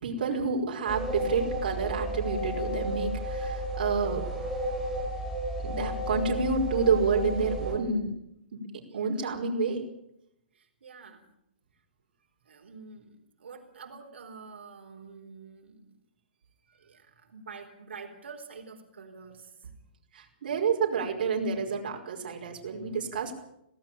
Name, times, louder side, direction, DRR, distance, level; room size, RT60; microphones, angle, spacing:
voice 1, 0.0-4.3 5.6-8.1 8.5-8.6 8.9-9.9 20.1-23.3, right 5 dB, 50° right, 1 dB, 5.1 m, -29 dB
sound 1, 0.9-7.7, equal, ahead, 5.2 m, -33 dB
voice 2, 10.5-11.3 12.4-15.9 16.7-19.7, right 5 dB, 80° right, 2 dB, 4.5 m, -47 dB
18.0 x 18.0 x 8.8 m, 0.80 s
hypercardioid pair, 170°, 6 cm